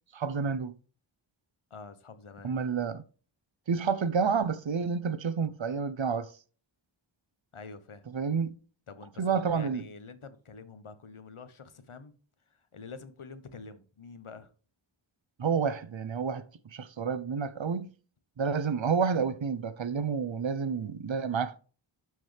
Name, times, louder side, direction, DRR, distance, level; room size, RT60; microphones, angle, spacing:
voice 1, 0.1-0.7 2.4-3.0 3.7-6.3 8.1-8.6 9.2-9.8 15.4-16.4 16.7-17.9 18.4-21.6, right 6 dB, 65° right, 0.8 m, -29 dB
voice 2, 1.7-2.6 7.5-8.1 8.9-12.1 12.5-14.5, left 4 dB, 75° left, 1.2 m, -47 dB
12.0 x 4.7 x 3.3 m
wide cardioid pair, 45°, 50 cm